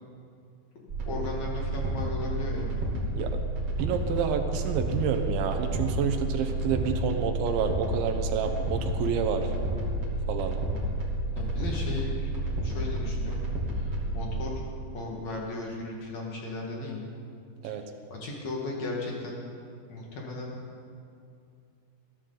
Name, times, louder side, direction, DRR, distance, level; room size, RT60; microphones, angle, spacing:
sound 1, 0.9-14.3, right 1 dB, 35° right, 3.1 m, -30 dB
voice 1, 1.1-2.7 11.4-12.3 12.6-13.4 13.7-14.7 14.9-17.1 17.6-17.8 18.1-19.4 19.9-20.6, left 2 dB, 50° left, -2 dB, 2.4 m, -36 dB
voice 2, 3.8-9.5 10.3-10.6 17.6-17.9, right 7 dB, 80° right, 5 dB, 3.3 m, -29 dB
21.5 x 15.0 x 4.0 m, 2.5 s
omnidirectional pair, 5.3 m